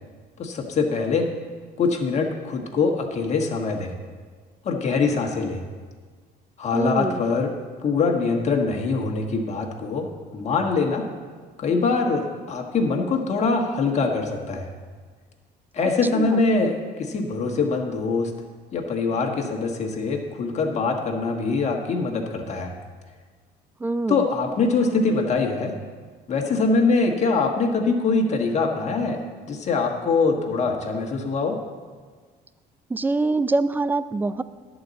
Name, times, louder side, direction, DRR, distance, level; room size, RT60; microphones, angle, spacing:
voice 1, 0.4-1.3 1.8-3.9 4.6-5.6 6.6-7.5 7.8-11.0 11.6-14.7 15.7-18.3 18.7-22.7 24.1-25.7 26.3-29.2 29.5-31.6, left 4 dB, 40° left, 2 dB, 1.4 m, -23 dB
voice 2, 6.7-7.2 15.8-16.4 23.8-24.3 32.9-34.4, right 3 dB, 10° right, 14 dB, 0.3 m, -25 dB
11.0 x 4.0 x 7.5 m, 1.5 s
cardioid pair, 110°, 17 cm